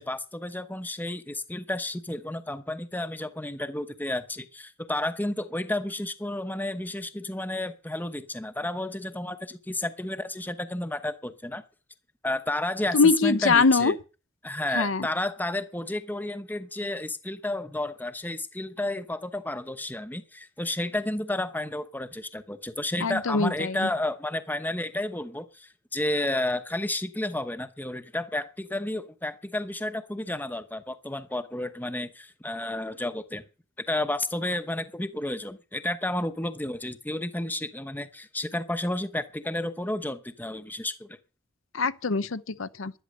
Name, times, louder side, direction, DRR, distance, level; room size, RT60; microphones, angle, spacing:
voice 1, 0.0-11.6 12.2-13.9 14.4-33.4 33.9-41.2, left 1 dB, 10° left, 0.9 m, -31 dB
voice 2, 12.9-13.9 14.7-15.1 23.0-23.9 41.7-42.9, left 4 dB, 70° left, 0.7 m, -23 dB
11.5 x 11.5 x 6.5 m
head